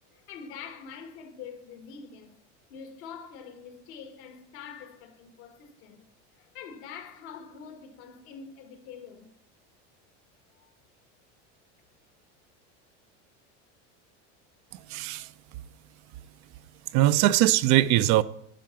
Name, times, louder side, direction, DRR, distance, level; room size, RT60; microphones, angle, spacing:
voice 1, 0.1-2.4 2.7-6.0 6.3-9.3 10.5-10.7, left 6 dB, 70° left, 1.7 m, -45 dB
voice 2, 14.9-15.3 16.9-18.2, right 15 dB, 55° right, 0.5 m, -21 dB
11.0 x 4.9 x 5.8 m
supercardioid pair, 120°, 35 cm